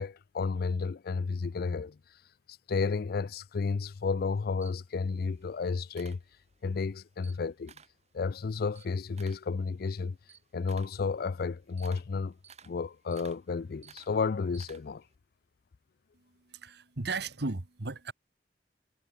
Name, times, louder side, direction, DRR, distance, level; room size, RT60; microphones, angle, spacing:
voice 1, 0.0-2.0 2.7-6.2 6.6-7.7 8.1-10.2 10.5-12.4 12.6-15.0, left 4 dB, 60° left, 0.4 m, -32 dB
Camera, 4.2-6.8 7.1-8.0 8.4-15.1, right 7 dB, 40° right, 6.1 m, -56 dB
voice 2, 16.1-18.1, right 3 dB, 70° right, 1.5 m, -36 dB
head